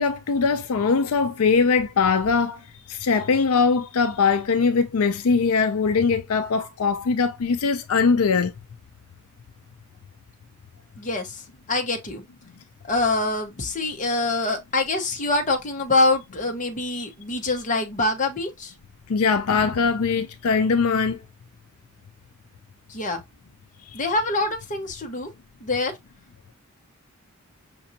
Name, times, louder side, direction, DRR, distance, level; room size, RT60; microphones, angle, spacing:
voice 1, 0.0-2.6 2.9-8.5 19.1-21.2, left 5 dB, 80° left, 0.5 m, -21 dB
voice 2, 11.0-11.3 11.7-12.2 12.9-18.7 22.9-23.2 23.9-25.3 25.6-25.9, left 2 dB, 35° left, 1.0 m, -25 dB
6.0 x 2.6 x 2.7 m
head